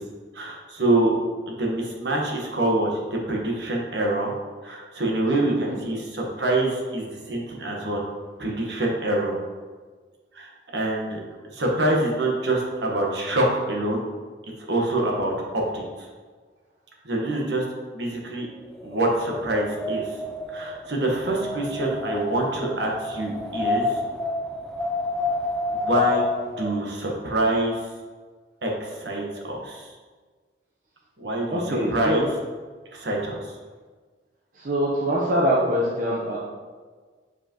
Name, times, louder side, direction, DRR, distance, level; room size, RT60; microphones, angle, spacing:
voice 1, 0.3-1.1 1.5-4.3 4.6-8.0 8.4-9.3 10.3-10.5 10.7-11.2 11.5-14.0 14.7-15.8 17.0-17.6 17.9-18.5 18.8-20.0 20.5-24.0 25.7-26.3 26.6-27.7 28.6-29.9 31.2-32.2 32.9-33.4, right 1 dB, 70° right, -1 dB, 1.3 m, -25 dB
Wind, 18.7-26.7, left 2 dB, 5° left, 0.4 m, -29 dB
voice 2, 31.5-32.3 34.5-36.4, equal, 50° right, -4 dB, 0.9 m, -24 dB
7.6 x 4.9 x 3.0 m, 1.4 s
head